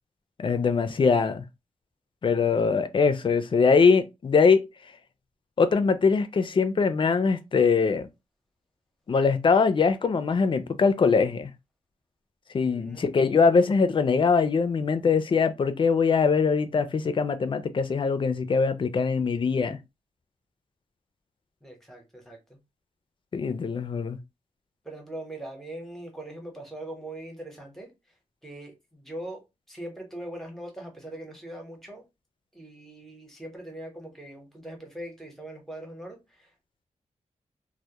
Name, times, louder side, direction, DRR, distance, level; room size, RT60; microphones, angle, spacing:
voice 1, 0.4-1.4 2.2-4.6 5.6-8.1 9.1-11.5 12.5-19.8 23.3-24.2, left 5 dB, 40° left, 0.4 m, -22 dB
voice 2, 12.6-13.1 21.6-22.6 24.8-27.9 28.4-29.4 29.7-32.0 32.5-36.5, right 1 dB, ahead, 0.9 m, -41 dB
2.2 x 2.1 x 2.8 m
wide cardioid pair, 105°, 13 cm